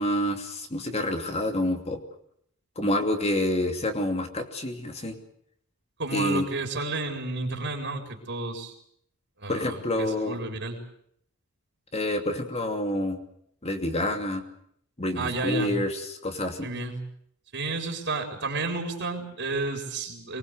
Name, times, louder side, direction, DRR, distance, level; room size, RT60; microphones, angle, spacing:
voice 1, 0.0-2.0 2.8-5.2 6.1-6.5 9.5-10.4 11.9-13.2 13.6-14.4 15.0-16.7, left 1 dB, 30° left, 5 dB, 2.8 m, -28 dB
voice 2, 6.0-8.7 9.4-10.8 15.2-15.7 16.6-17.0 17.5-20.4, right 3 dB, 55° right, 3 dB, 4.1 m, -31 dB
25.0 x 20.5 x 8.1 m, 0.68 s
head